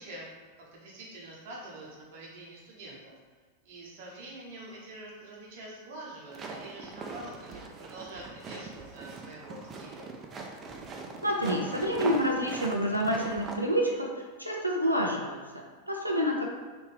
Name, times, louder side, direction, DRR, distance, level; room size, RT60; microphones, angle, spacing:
voice 1, 0.0-3.1 3.6-10.1, right 1 dB, 50° right, -3 dB, 0.8 m, -45 dB
sound 1, 6.3-13.6, right 3 dB, 25° right, 0.4 m, -41 dB
voice 2, 11.2-16.4, equal, 90° left, -1 dB, 0.5 m, -28 dB
3.4 x 2.6 x 3.2 m, 1.4 s
figure-of-eight pair, 90°, 0 cm